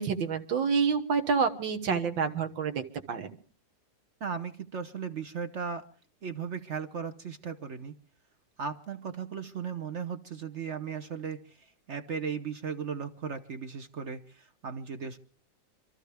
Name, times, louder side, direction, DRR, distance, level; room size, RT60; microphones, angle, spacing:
voice 1, 0.0-2.8 3.1-3.4, right 5 dB, 75° right, 6 dB, 2.1 m, -28 dB
voice 2, 4.2-5.9 6.2-7.9 8.6-15.2, right 6 dB, 50° right, 7 dB, 0.9 m, -37 dB
27.0 x 13.5 x 3.4 m, 0.41 s
omnidirectional pair, 2.1 m